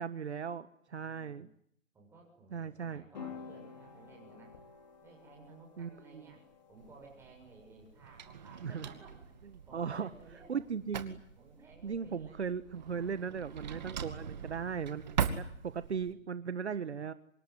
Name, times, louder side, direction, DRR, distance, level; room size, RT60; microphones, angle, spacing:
voice 1, 0.0-1.5 2.5-3.0 5.8-6.3 8.6-8.9 9.7-10.1 10.5-11.2 11.8-17.1, right 6 dB, 55° right, 13 dB, 1.5 m, -38 dB
voice 2, 0.9-1.5 1.9-4.6 5.0-9.2 9.7-10.6 11.4-12.4 13.0-13.4 15.7-16.3, right 3 dB, 5° right, 0 dB, 7.0 m, -57 dB
sound 1, 3.1-11.6, left 6 dB, 35° left, 4.7 m, -53 dB
Drawer open or close, 6.8-16.1, right 7 dB, 35° right, 2.4 m, -41 dB
26.0 x 22.5 x 9.6 m, 0.70 s
hypercardioid pair, 160°, 40 cm